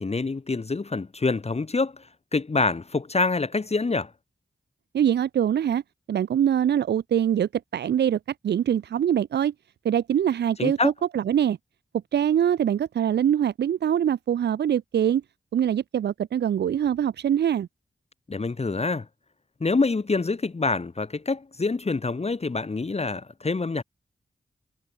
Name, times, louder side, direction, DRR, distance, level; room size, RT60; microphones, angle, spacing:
voice 1, 0.0-2.0 2.3-4.1 10.6-10.9 18.3-19.0 19.6-23.8, left 3 dB, 40° left, 1.3 m, -26 dB
voice 2, 4.9-5.8 6.1-9.5 9.8-11.6 12.1-15.2 15.5-17.7, right 9 dB, 85° right, 0.5 m, -23 dB
cardioid pair, 60°, 17 cm